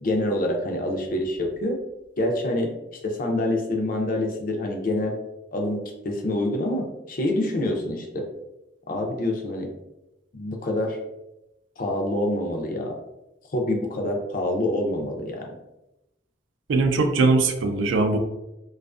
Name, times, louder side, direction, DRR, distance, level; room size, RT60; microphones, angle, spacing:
voice 1, 0.0-1.8 2.2-2.7 3.0-5.2 5.5-8.2 8.9-9.7 10.3-11.0 11.8-12.9 13.5-15.5, left 1 dB, 45° left, 2 dB, 0.4 m, -26 dB
voice 2, 16.7-18.2, right 3 dB, 75° right, 6 dB, 0.4 m, -20 dB
2.4 x 2.3 x 2.3 m, 0.93 s
head